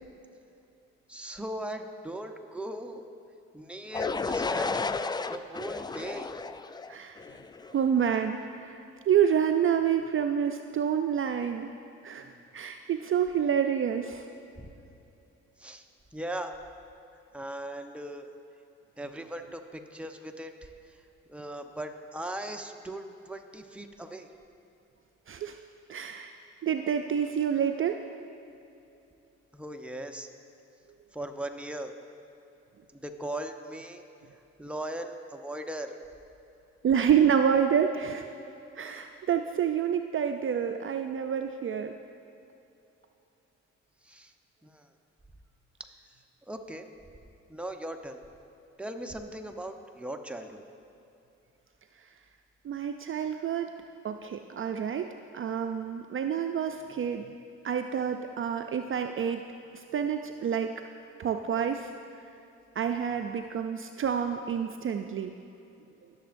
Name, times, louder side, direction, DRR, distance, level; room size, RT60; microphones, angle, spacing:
voice 1, 1.1-3.0 3.5-5.0 5.3-6.3 14.6-14.7 15.6-15.8 16.1-16.5 17.3-18.3 19.0-20.5 21.3-24.3 29.5-30.3 31.1-31.9 32.9-34.0 34.6-35.9 44.0-44.3 44.6-44.8 46.5-46.8 47.5-48.2 48.8-50.6, right 1 dB, 5° right, 4 dB, 0.9 m, -38 dB
sound 1, 3.9-7.8, left 4 dB, 15° left, 0.3 m, -33 dB
voice 2, 7.7-11.7 12.0-12.3 12.5-14.2 25.3-25.6 25.9-26.3 26.6-28.0 36.8-38.2 38.8-41.9 52.6-53.7 54.0-57.2 57.6-59.4 59.7-60.7 61.2-61.9 62.8-65.3, right 8 dB, 45° right, 6 dB, 0.5 m, -28 dB
18.5 x 7.0 x 2.6 m, 2.8 s
supercardioid pair, 55°, 30 cm